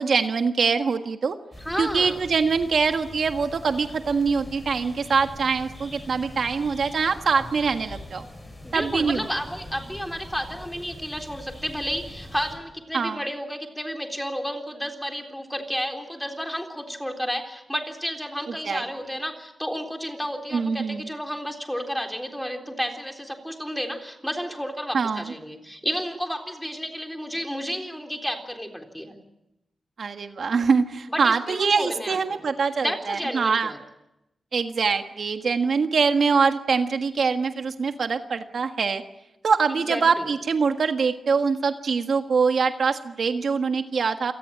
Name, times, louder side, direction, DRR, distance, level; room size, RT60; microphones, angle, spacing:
voice 1, 0.0-1.4 1.8-8.2 8.7-9.3 12.9-13.2 18.6-18.8 20.5-21.1 24.9-25.3 30.0-33.7 34.5-39.0 39.4-44.3, right 5 dB, 65° right, 7 dB, 1.5 m, -23 dB
sound 1, 1.5-12.6, left 1 dB, 20° left, 7.5 m, -42 dB
voice 2, 1.6-2.2 8.6-29.2 31.1-32.5 32.8-33.8 39.9-40.3, equal, 5° left, 4 dB, 3.7 m, -31 dB
28.0 x 19.0 x 8.7 m, 0.89 s
wide cardioid pair, 115°, 0 cm